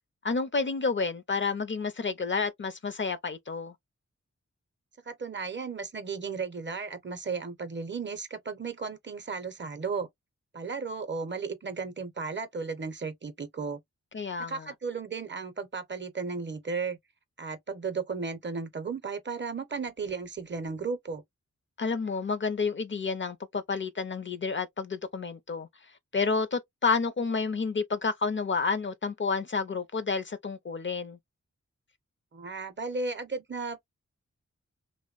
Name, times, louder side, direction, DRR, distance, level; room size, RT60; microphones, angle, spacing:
voice 1, 0.2-3.7 14.1-14.7 21.8-25.7 26.1-31.2, left 4 dB, 40° left, 0.4 m, -30 dB
voice 2, 5.1-10.1 10.5-13.8 14.4-17.0 17.4-21.2 32.3-33.8, right 4 dB, 40° right, 0.6 m, -35 dB
2.9 x 2.0 x 2.3 m
wide cardioid pair, 95°, 29 cm